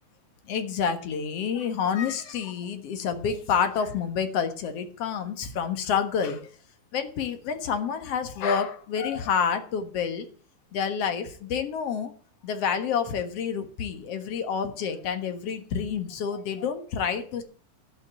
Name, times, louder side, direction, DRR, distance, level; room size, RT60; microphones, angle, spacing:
voice 1, 0.5-6.5 6.9-10.3 10.7-12.1 12.4-17.4, left 7 dB, 55° left, 8 dB, 2.3 m, -28 dB
12.0 x 5.8 x 8.9 m, 0.43 s
omnidirectional pair, 3.5 m